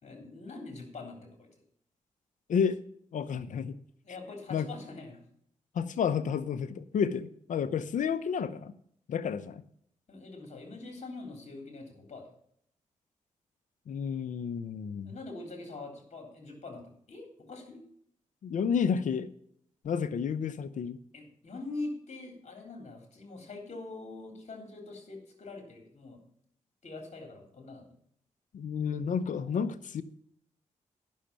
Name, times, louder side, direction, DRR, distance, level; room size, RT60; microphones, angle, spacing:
voice 1, 0.0-1.5 4.0-5.2 10.1-12.3 15.0-17.8 21.1-26.2 26.8-27.9 29.5-29.6, left 3 dB, 55° left, 3.5 m, -43 dB
voice 2, 3.1-3.7 4.5-4.7 5.7-8.7 9.1-9.6 13.9-15.1 18.4-19.3 19.8-21.0 28.5-30.0, left 7 dB, 75° left, 0.7 m, -31 dB
10.0 x 6.4 x 6.8 m
cardioid pair, 55°, 13 cm